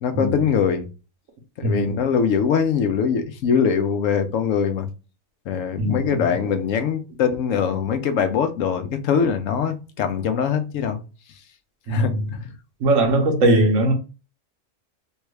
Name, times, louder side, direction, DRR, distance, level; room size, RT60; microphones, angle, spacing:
voice 1, 0.0-0.9 1.6-4.9 5.5-11.0 11.9-12.1, left 7 dB, 90° left, 1.0 m, -22 dB
voice 2, 1.6-2.0 5.8-6.3 11.9-12.3 12.8-13.9, right 1 dB, 90° right, 1.4 m, -20 dB
3.4 x 2.3 x 3.1 m
omnidirectional pair, 1.3 m